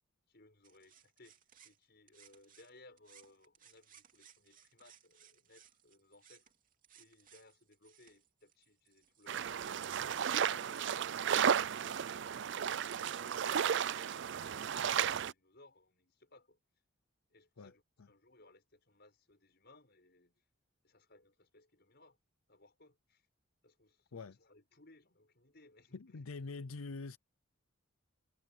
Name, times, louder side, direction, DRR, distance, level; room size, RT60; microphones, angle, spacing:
voice 1, 0.3-6.5 7.0-10.9 11.3-16.6 17.3-20.4 20.8-22.2 22.5-23.3 23.6-26.3, left 2 dB, 50° left, 6.9 m, -63 dB
sound 1, 0.6-2.7 3.0-9.3, right 9 dB, 40° right, 3.0 m, -63 dB
sound 2, 9.3-15.3, right 8 dB, 55° right, 0.4 m, -34 dB
voice 2, 25.9-27.2, left 3 dB, 80° left, 0.6 m, -44 dB
head